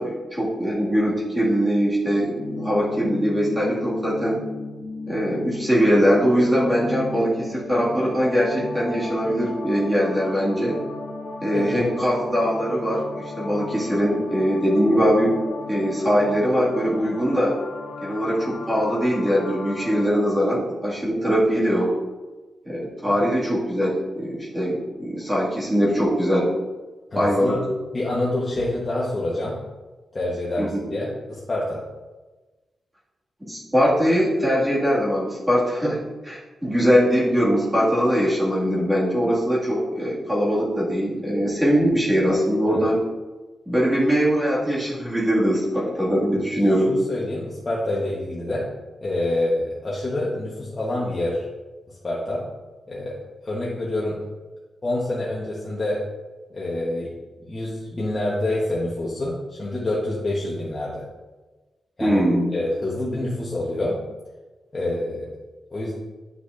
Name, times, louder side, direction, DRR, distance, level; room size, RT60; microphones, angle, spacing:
voice 1, 0.0-4.4 5.1-10.8 11.4-15.3 15.7-17.6 18.0-21.9 22.7-26.5 27.1-27.6 30.6-30.7 33.5-43.0 43.7-46.9 62.0-62.5, equal, 10° right, -7 dB, 2.0 m, -21 dB
sound 1, 2.4-20.0, left 2 dB, 70° left, 1.1 m, -35 dB
voice 2, 11.5-11.9 23.1-23.2 27.1-27.6 27.9-29.6 30.1-31.8 42.7-42.8 46.9-48.7 49.0-51.4 51.9-52.4 52.9-53.2 53.4-54.2 54.8-56.0 56.5-57.1 57.4-61.0 62.0-62.2 62.5-64.0 64.7-65.3 65.7-65.9, left 1 dB, 25° left, -6 dB, 1.1 m, -27 dB
9.9 x 6.0 x 2.6 m, 1.2 s
wide cardioid pair, 170°, 0 cm